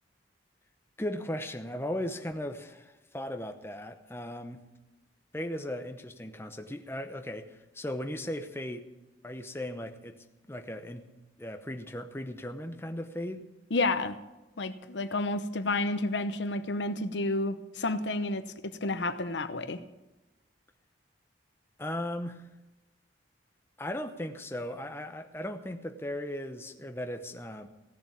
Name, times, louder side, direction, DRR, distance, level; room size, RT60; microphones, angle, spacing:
voice 1, 1.0-4.7 5.3-8.9 9.2-11.1 11.4-13.4 21.8-22.5 23.8-27.7, left 1 dB, 15° left, 6 dB, 0.8 m, -37 dB
voice 2, 13.7-14.2 14.6-19.8, left 2 dB, 75° left, 11 dB, 0.9 m, -30 dB
16.5 x 7.2 x 8.5 m, 1.0 s
head